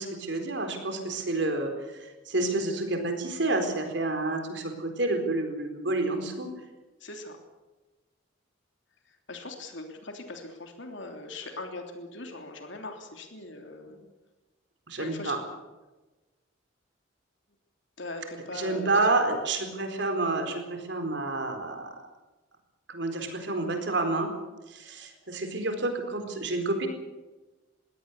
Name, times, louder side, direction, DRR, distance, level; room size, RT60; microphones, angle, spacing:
voice 1, 0.0-6.5 13.9-14.0 14.9-15.4 18.5-22.0 22.9-24.3 24.7-26.9, right 2 dB, 60° right, 5 dB, 4.2 m, -29 dB
voice 2, 7.0-7.4 9.0-14.0 15.0-15.4 18.0-19.0, left 2 dB, 65° left, 4 dB, 3.2 m, -40 dB
22.0 x 17.0 x 8.3 m, 1.1 s
head